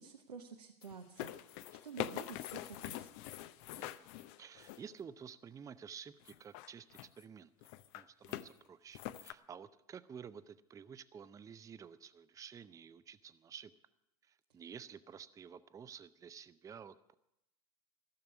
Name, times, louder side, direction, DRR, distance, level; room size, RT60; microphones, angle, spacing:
voice 1, 0.0-1.6 1.8-3.1, right 6 dB, 90° right, 3 dB, 0.9 m, -50 dB
sound 1, 0.8-5.0 6.2-7.2 7.6-8.5 8.9-9.3, left 13 dB, 50° left, 0.7 m, -44 dB
voice 2, 3.7-4.1 4.4-7.5 7.9-13.7 14.2-17.1, right 7 dB, 15° right, 14 dB, 0.5 m, -52 dB
15.5 x 6.8 x 9.4 m, 0.84 s
hypercardioid pair, 95°, 20 cm